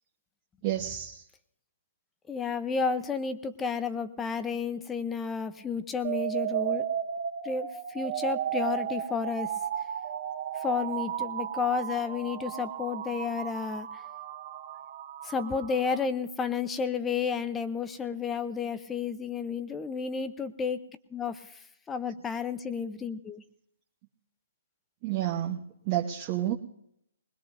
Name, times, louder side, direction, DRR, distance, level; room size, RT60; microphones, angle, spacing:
voice 1, 0.6-1.2 25.0-26.5, right 12 dB, 35° right, 0 dB, 1.0 m, -30 dB
voice 2, 2.3-6.8 7.4-9.5 10.5-13.9 15.2-20.8 21.1-21.6 21.9-23.4, left 5 dB, 10° left, 12 dB, 0.7 m, -31 dB
sound 1, 6.0-16.0, right 10 dB, 50° right, 1.8 m, -34 dB
20.5 x 20.5 x 2.7 m, 0.75 s
hypercardioid pair, 145°, 0 cm